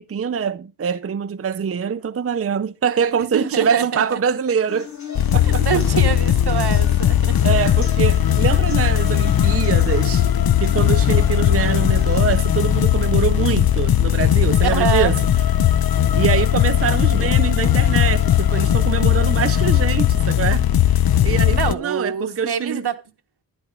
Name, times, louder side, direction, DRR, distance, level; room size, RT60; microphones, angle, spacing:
voice 1, 0.0-4.9 5.3-6.0 7.4-10.2 10.6-15.2 16.1-22.9, right 7 dB, 35° right, 0.5 m, -24 dB
voice 2, 3.3-4.2 5.4-7.4 14.6-15.1 21.5-22.9, right 7 dB, 75° right, 1.2 m, -25 dB
sound 1, 4.7-12.7, left 2 dB, 45° left, 6.2 m, -36 dB
sound 2, 5.1-21.7, left 10 dB, 65° left, 0.7 m, -18 dB
11.0 x 10.5 x 3.7 m
wide cardioid pair, 95°, 39 cm